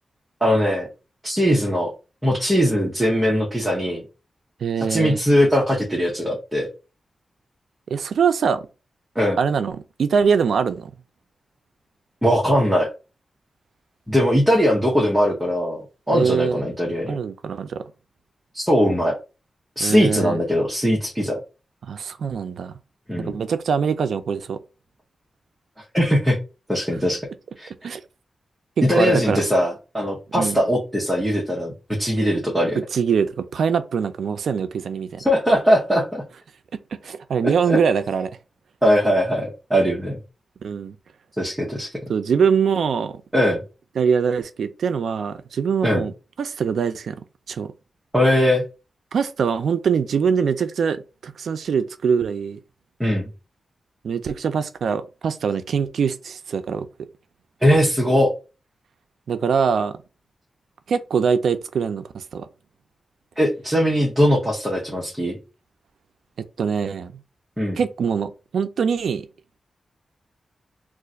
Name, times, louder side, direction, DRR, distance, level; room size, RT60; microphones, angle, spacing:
voice 1, 0.4-0.9 1.2-1.9 2.2-4.0 4.9-6.7 9.2-9.4 12.2-12.9 14.1-15.8 16.1-17.2 18.5-19.1 19.8-21.4 23.1-23.3 25.9-26.4 26.7-27.2 27.6-27.7 28.9-32.8 35.2-36.2 37.7-37.8 38.8-40.2 41.4-41.9 43.3-43.6 45.8-46.0 48.1-48.6 53.0-53.3 57.6-58.3 63.4-65.4 67.6-67.8, equal, 5° right, 0.7 m, -20 dB
voice 2, 4.6-5.2 7.9-8.7 9.4-10.9 16.1-16.6 17.1-17.8 19.8-20.4 21.8-22.7 23.2-24.6 27.8-28.0 28.8-29.4 30.3-30.6 32.9-35.2 36.9-38.3 40.6-40.9 42.1-43.2 44.0-46.1 46.4-47.2 47.5-47.7 49.1-52.6 54.0-56.9 59.3-60.0 60.9-62.5 66.6-67.1 67.8-69.3, right 6 dB, 90° right, 0.3 m, -23 dB
2.4 x 2.4 x 3.9 m
wide cardioid pair, 150°, 0 cm